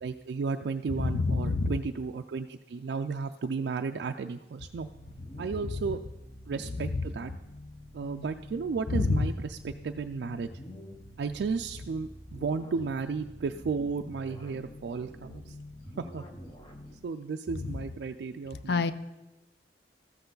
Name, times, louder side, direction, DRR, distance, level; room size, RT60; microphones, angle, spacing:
voice 1, 0.0-4.9 5.4-6.0 6.5-7.3 7.9-10.5 11.2-15.5 16.0-16.2 17.0-18.8, right 5 dB, 70° right, 5 dB, 0.3 m, -34 dB
voice 2, 1.0-1.7 8.9-9.2 18.7-18.9, left 3 dB, 65° left, 13 dB, 0.5 m, -26 dB
sound 1, 4.7-17.0, left 1 dB, 25° left, 1.0 m, -47 dB
13.5 x 7.9 x 3.9 m, 1.0 s
head